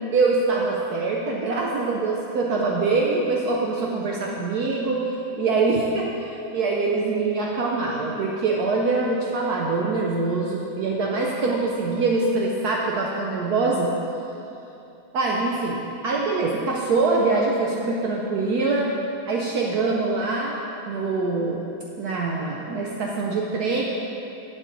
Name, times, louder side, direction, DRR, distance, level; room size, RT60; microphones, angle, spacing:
voice 1, 0.1-5.0 5.4-13.9 15.1-18.9 19.3-20.5 20.9-21.6 22.0-23.8, right 3 dB, 70° right, -2 dB, 0.9 m, -24 dB
7.4 x 7.1 x 3.9 m, 2.9 s
omnidirectional pair, 2.2 m